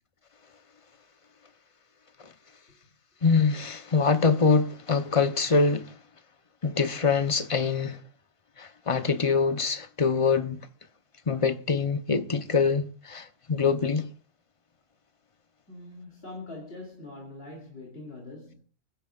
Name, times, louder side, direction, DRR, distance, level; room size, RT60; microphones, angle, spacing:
voice 1, 3.2-6.0 6.6-8.0 8.6-10.6 11.3-14.1, left 5 dB, 30° left, 0.8 m, -24 dB
voice 2, 15.7-18.6, left 2 dB, 50° left, 3.1 m, -43 dB
30.0 x 10.5 x 2.4 m
omnidirectional pair, 1.3 m